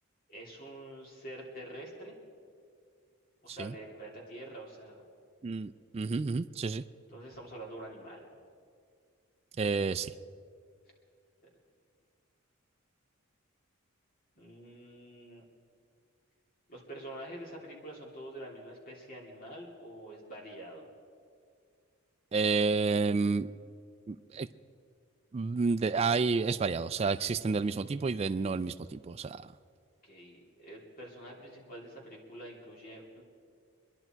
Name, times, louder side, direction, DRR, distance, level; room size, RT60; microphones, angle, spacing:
voice 1, 0.3-2.1 3.4-5.0 7.1-8.3 11.4-11.5 14.3-15.4 16.7-20.9 30.0-33.2, right 1 dB, 40° left, -2 dB, 3.2 m, -46 dB
voice 2, 5.4-6.8 9.6-10.1 22.3-23.5 24.1-24.5 25.3-29.4, right 4 dB, 30° right, 10 dB, 0.3 m, -30 dB
26.0 x 11.0 x 4.6 m, 2.3 s
head